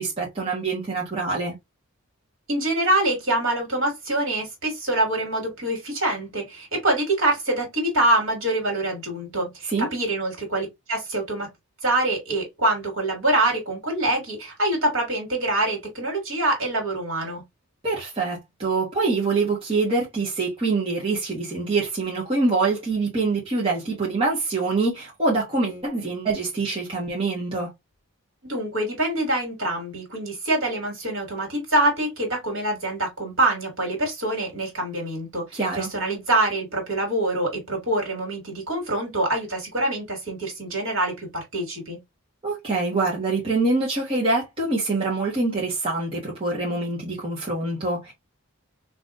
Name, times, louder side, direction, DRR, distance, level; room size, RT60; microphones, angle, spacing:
voice 1, 0.0-1.6 9.7-9.9 17.8-27.7 35.5-35.9 42.4-48.1, right 3 dB, 25° right, 1.4 m, -25 dB
voice 2, 2.5-11.5 11.8-17.4 28.4-42.0, right 1 dB, 60° right, 2.4 m, -25 dB
4.0 x 3.4 x 2.5 m
head